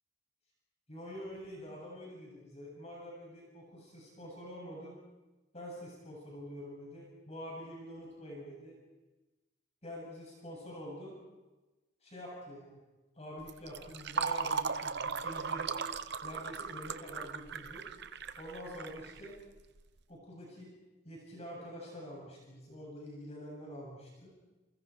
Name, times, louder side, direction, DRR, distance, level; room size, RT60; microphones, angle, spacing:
voice 1, 0.9-5.0 5.5-8.8 9.8-11.2 12.0-12.8 13.1-15.7 16.2-17.9 18.4-19.4 20.1-20.7 21.0-24.3, equal, 35° left, -3 dB, 8.0 m, -46 dB
Fill (with liquid), 13.4-19.8, right 5 dB, 65° right, 1.0 m, -37 dB
30.0 x 29.0 x 4.8 m, 1.1 s
head